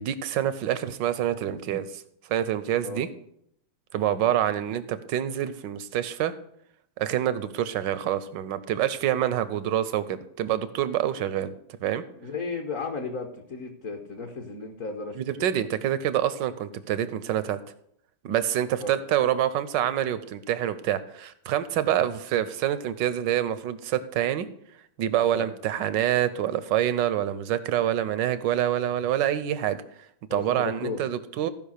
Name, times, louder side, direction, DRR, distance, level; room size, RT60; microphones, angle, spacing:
voice 1, 0.0-2.0 2.3-3.1 3.9-6.3 7.0-11.5 11.8-12.0 15.2-17.6 18.2-24.5 25.0-29.8 30.3-31.5, right 11 dB, 70° right, 14 dB, 1.1 m, -26 dB
voice 2, 12.2-15.5 18.8-18.9 25.3-25.5 30.3-31.0, left 4 dB, 45° left, 3 dB, 1.2 m, -34 dB
15.0 x 5.3 x 6.5 m, 0.72 s
omnidirectional pair, 2.4 m